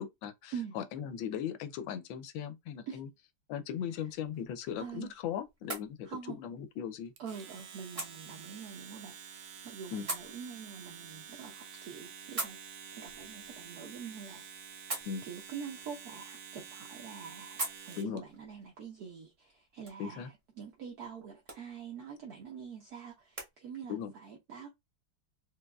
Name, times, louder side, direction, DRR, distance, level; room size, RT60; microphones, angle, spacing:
voice 1, 0.0-3.1 3.5-6.1 6.4-7.1 9.9-10.1 15.1-15.2 18.0-18.2 20.0-20.3 23.9-24.1, left 8 dB, 75° left, 1.3 m, -38 dB
sound 1, 4.0-23.5, right 2 dB, 30° right, 0.6 m, -47 dB
voice 2, 4.8-5.1 6.0-6.4 7.2-12.6 13.0-14.4 15.2-17.6 17.9-24.7, right 7 dB, 65° right, 1.0 m, -45 dB
Domestic sounds home sounds, 7.2-18.2, right 7 dB, 85° right, 0.7 m, -49 dB
4.5 x 2.4 x 2.3 m
omnidirectional pair, 2.2 m